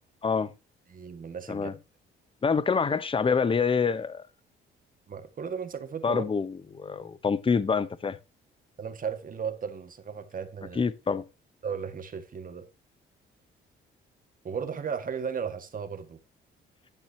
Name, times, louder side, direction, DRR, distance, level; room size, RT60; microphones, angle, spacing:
voice 1, 0.9-1.7 5.1-6.2 8.8-10.8 11.6-12.7 14.4-16.2, right 6 dB, 45° right, 1.8 m, -35 dB
voice 2, 2.4-4.2 6.0-8.2 10.8-11.2, left 5 dB, 25° left, 0.9 m, -26 dB
11.5 x 9.1 x 2.9 m
cardioid pair, 90°, 20 cm